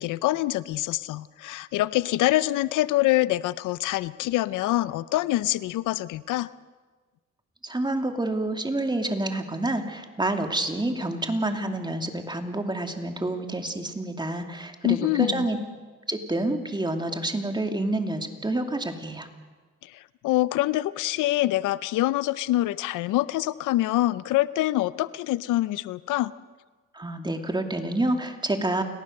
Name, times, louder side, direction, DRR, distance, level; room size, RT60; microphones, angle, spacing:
voice 1, 0.0-6.5 14.8-15.5 19.8-26.3, left 16 dB, 90° left, 17 dB, 0.7 m, -25 dB
voice 2, 7.6-15.6 16.1-19.3 26.9-28.8, right 2 dB, 15° right, 5 dB, 2.7 m, -28 dB
29.0 x 18.5 x 6.6 m, 1.3 s
cardioid pair, 90°, 30 cm